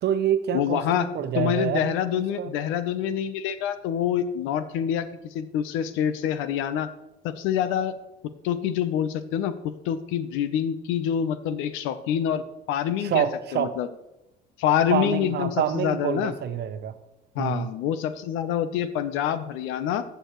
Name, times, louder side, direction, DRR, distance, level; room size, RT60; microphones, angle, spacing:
voice 1, 0.0-2.5 13.0-13.8 14.9-16.9 17.4-17.7, right 9 dB, 55° right, 10 dB, 0.9 m, -27 dB
voice 2, 0.5-1.1 1.3-6.9 7.2-7.9 8.4-12.4 12.7-13.2 13.5-13.9 14.6-16.3 17.3-20.0, left 9 dB, 75° left, 12 dB, 0.8 m, -26 dB
14.0 x 6.9 x 3.1 m, 0.92 s
supercardioid pair, 80°, 21 cm